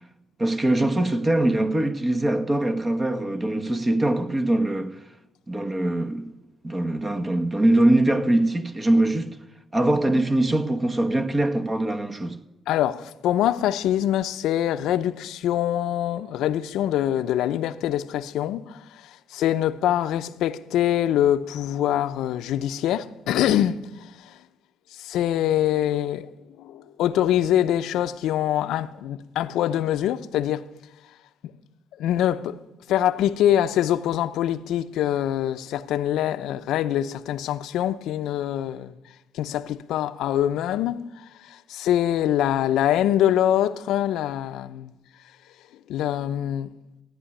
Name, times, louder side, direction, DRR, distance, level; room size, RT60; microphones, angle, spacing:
voice 1, 0.4-5.0 5.5-6.3 6.6-9.3 9.7-12.4, right 1 dB, 25° right, 1.3 m, -22 dB
voice 2, 12.7-24.4 24.9-26.3 26.6-30.7 31.4-31.5 32.0-32.5 32.9-38.9 39.3-44.9 45.9-46.7, left 11 dB, 85° left, 0.7 m, -24 dB
14.0 x 9.9 x 10.0 m
cardioid pair, 90°, 0 cm